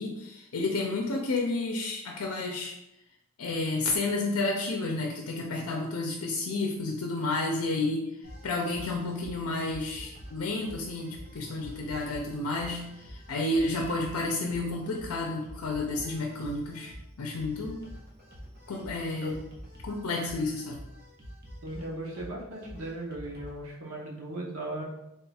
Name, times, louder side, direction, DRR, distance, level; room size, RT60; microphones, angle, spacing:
voice 1, 0.0-2.7 3.4-8.1 8.4-16.9 17.2-17.8 18.7-19.3 19.8-20.8, left 2 dB, 90° left, 0 dB, 0.5 m, -31 dB
sound 1, 8.2-23.6, equal, 45° right, 1.0 m, -47 dB
voice 2, 21.6-24.9, right 1 dB, 80° right, -1 dB, 0.9 m, -37 dB
3.6 x 2.3 x 4.1 m, 0.87 s
head